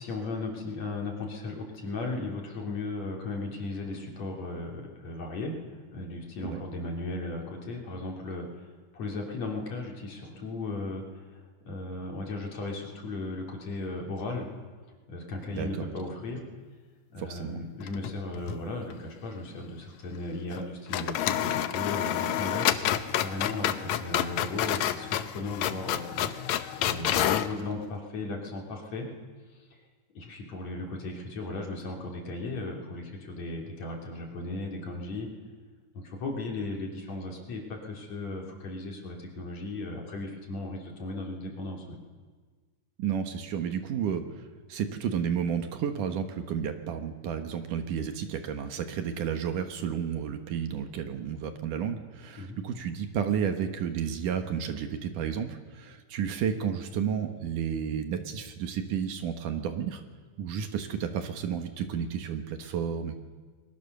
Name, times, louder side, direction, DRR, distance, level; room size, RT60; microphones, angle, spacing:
voice 1, 0.0-8.7 8.9-11.4 11.7-14.5 15.1-16.4 17.1-26.3 26.8-29.1 30.1-35.3 35.9-42.0 52.4-52.6, left 2 dB, 55° left, 0 dB, 4.3 m, -36 dB
voice 2, 15.5-16.0 17.2-17.7 43.0-44.2 44.7-60.0 60.4-63.2, right 8 dB, 70° right, 7 dB, 2.9 m, -32 dB
sound 1, 17.8-18.6 18.9-19.0 20.5-20.7 20.9-27.5, left 11 dB, 70° left, 1.9 m, -29 dB
29.5 x 21.5 x 6.8 m, 1.4 s
omnidirectional pair, 3.9 m